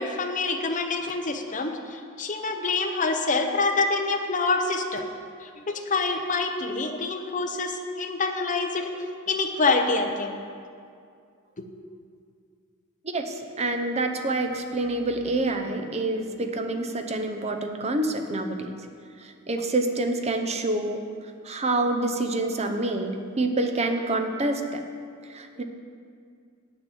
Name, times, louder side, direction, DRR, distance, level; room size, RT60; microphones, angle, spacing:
voice 1, 0.0-5.0 5.4-10.4, left 3 dB, 35° left, 4 dB, 0.8 m, -26 dB
voice 2, 13.0-18.7 19.2-21.0 21.4-24.8 25.3-25.6, right 2 dB, 30° right, 5 dB, 0.7 m, -27 dB
8.7 x 6.8 x 7.1 m, 2.3 s
head